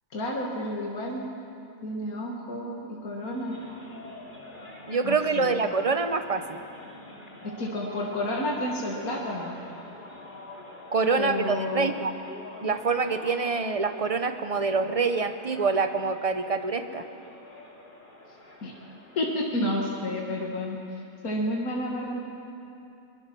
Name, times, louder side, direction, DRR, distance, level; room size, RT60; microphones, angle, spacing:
voice 1, 0.1-1.2 1.8-3.6 5.0-5.6 7.4-9.5 11.2-11.9 18.6-18.7 19.2-22.2, left 1 dB, 75° left, -2 dB, 2.4 m, -30 dB
sound 1, 3.2-19.4, left 2 dB, 35° left, 2.9 m, -46 dB
voice 2, 4.9-6.6 10.9-12.1 12.6-17.1, right 4 dB, 30° right, 8 dB, 0.8 m, -26 dB
22.5 x 21.0 x 6.2 m, 2.6 s
omnidirectional pair, 1.5 m